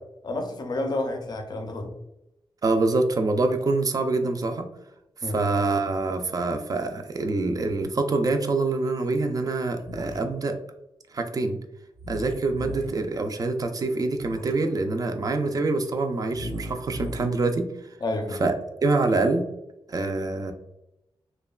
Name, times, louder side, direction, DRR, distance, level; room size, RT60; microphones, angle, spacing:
voice 1, 0.2-1.9 5.2-5.4 18.0-18.4, left 2 dB, 45° left, 4 dB, 0.5 m, -30 dB
voice 2, 2.6-4.7 5.2-10.6 11.1-11.6 12.1-17.7 18.3-18.5 18.8-19.4 19.9-20.5, right 3 dB, 40° right, 5 dB, 0.3 m, -25 dB
sound 1, 9.8-10.2 12.0-12.9 14.1-14.5 16.3-17.3, equal, 85° right, 0.6 m, -37 dB
2.9 x 2.1 x 2.3 m, 0.88 s
wide cardioid pair, 100°, 10 cm